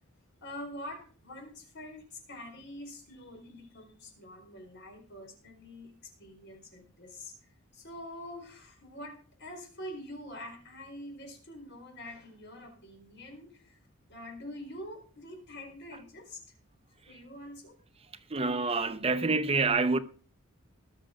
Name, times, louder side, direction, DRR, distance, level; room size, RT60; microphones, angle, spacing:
voice 1, 0.4-7.3 7.7-13.8 14.1-16.4 17.1-17.8, left 1 dB, 60° left, 4.6 m, -45 dB
voice 2, 18.3-20.0, right 3 dB, 30° right, 0.8 m, -27 dB
19.5 x 6.7 x 5.1 m
head